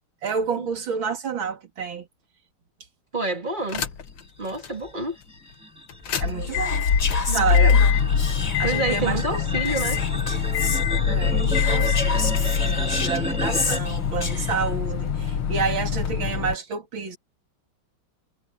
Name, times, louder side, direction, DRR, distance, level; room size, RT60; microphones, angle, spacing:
voice 1, 0.2-2.1 6.2-8.0 8.6-9.4 11.1-17.2, right 6 dB, 65° right, 3.1 m, -29 dB
voice 2, 3.1-3.9 4.4-5.2 7.3-7.8 8.6-10.0, right 3 dB, 25° right, 1.9 m, -28 dB
sound 1, 3.7-4.2 4.6-4.7 5.9-16.5, left 7 dB, 80° left, 2.3 m, -24 dB
sound 2, 4.5-13.8, equal, 5° right, 1.3 m, -33 dB
Whispering, 6.4-8.9 9.6-10.8 11.4-14.7, left 4 dB, 25° left, 0.9 m, -32 dB
omnidirectional pair, 2.3 m